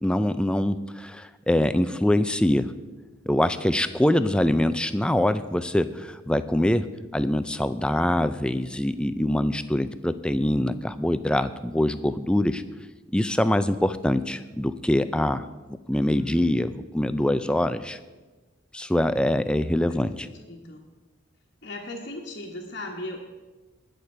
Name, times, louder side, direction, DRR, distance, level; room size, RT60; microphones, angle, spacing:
voice 1, 0.0-2.7 3.3-6.9 7.1-12.6 13.1-18.0 18.7-20.3, left 1 dB, 5° left, 11 dB, 0.3 m, -24 dB
voice 2, 15.9-16.5 19.9-20.8 21.6-23.2, left 1 dB, 45° left, -5 dB, 1.3 m, -38 dB
20.0 x 6.7 x 4.4 m, 1.2 s
head